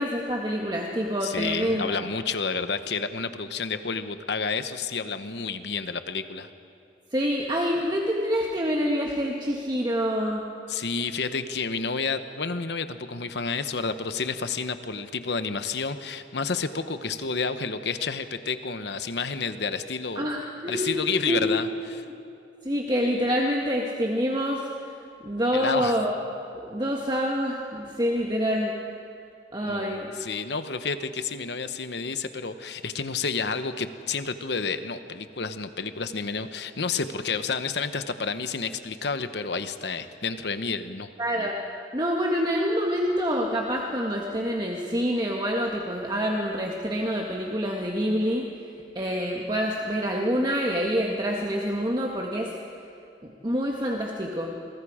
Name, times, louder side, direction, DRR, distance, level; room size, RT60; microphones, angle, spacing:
voice 1, 0.0-2.0 7.1-10.4 20.1-21.5 22.6-24.7 25.2-26.1 26.5-28.7 29.5-30.1 41.2-41.6 41.9-48.5 48.9-52.5 53.4-54.5, equal, 25° right, 0 dB, 1.5 m, -26 dB
voice 2, 1.2-6.5 10.7-20.3 20.7-22.0 25.5-26.0 29.6-41.1, left 4 dB, 70° left, 10 dB, 1.0 m, -30 dB
28.5 x 22.5 x 5.0 m, 2.7 s
head